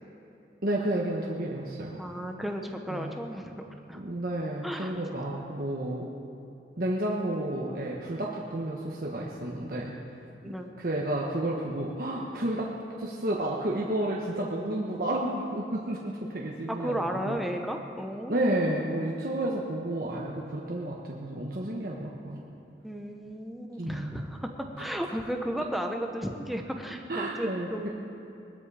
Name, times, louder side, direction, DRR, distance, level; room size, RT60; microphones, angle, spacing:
voice 1, 0.6-2.0 2.9-3.1 3.9-6.1 6.8-9.9 10.4-12.7 13.0-17.4 18.3-22.4 23.8-24.2 24.8-24.9 27.1-27.9, right 1 dB, 55° right, -3 dB, 1.3 m, -31 dB
voice 2, 2.0-3.6 3.9-4.0 4.6-5.0 10.4-10.7 16.7-18.6 22.8-27.9, equal, ahead, 3 dB, 0.9 m, -34 dB
20.5 x 13.0 x 4.9 m, 2.8 s
head